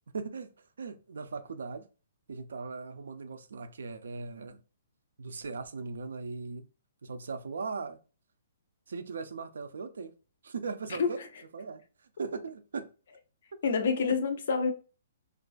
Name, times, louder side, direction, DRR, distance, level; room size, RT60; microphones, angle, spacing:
voice 1, 0.1-0.5 0.8-1.9 2.3-4.6 5.2-6.7 7.0-8.0 8.9-10.1 10.4-11.2 11.5-11.8 12.2-12.9, right 4 dB, 90° right, 0.3 m, -38 dB
voice 2, 10.9-11.3 13.6-14.7, left 5 dB, 45° left, 0.4 m, -28 dB
2.4 x 2.2 x 2.4 m
hypercardioid pair, 180°, 0 cm